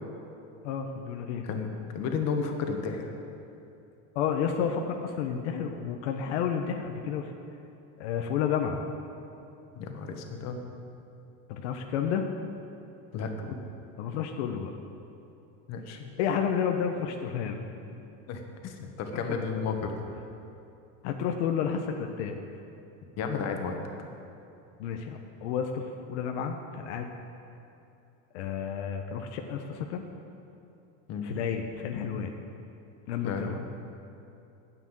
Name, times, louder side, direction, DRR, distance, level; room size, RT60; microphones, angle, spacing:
voice 1, 0.6-1.5 4.1-7.3 8.0-8.8 11.5-12.3 14.0-14.7 16.2-17.6 19.1-19.4 21.0-22.4 24.8-27.1 28.3-30.0 31.2-32.3 33.1-33.6, left 7 dB, 90° left, 4 dB, 1.0 m, -31 dB
voice 2, 1.9-3.1 9.7-10.6 13.1-13.6 15.7-16.1 18.3-20.1 23.2-23.8 31.1-31.3 33.2-33.5, left 5 dB, 50° left, 4 dB, 1.5 m, -33 dB
9.9 x 9.1 x 7.5 m, 2.8 s
supercardioid pair, 140°, 34 cm